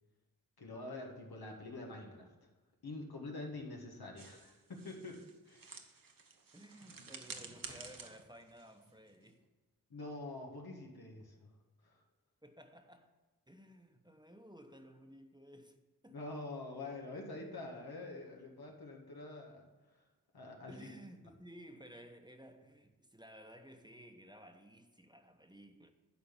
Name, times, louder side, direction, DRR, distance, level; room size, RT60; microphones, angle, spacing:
voice 1, 0.6-2.3 2.8-5.7 9.9-11.5 11.8-12.0 16.1-19.7 20.3-20.8, left 2 dB, 85° left, 1.7 m, -46 dB
sound 1, 4.2-9.5, right 4 dB, 65° right, 1.0 m, -52 dB
voice 2, 6.5-9.5 12.4-13.1 13.5-16.2 20.7-25.9, equal, 10° right, 1.0 m, -56 dB
sound 2, 7.5-9.5, left 2 dB, 55° left, 1.9 m, -65 dB
11.5 x 4.2 x 7.1 m
cardioid pair, 45°, 36 cm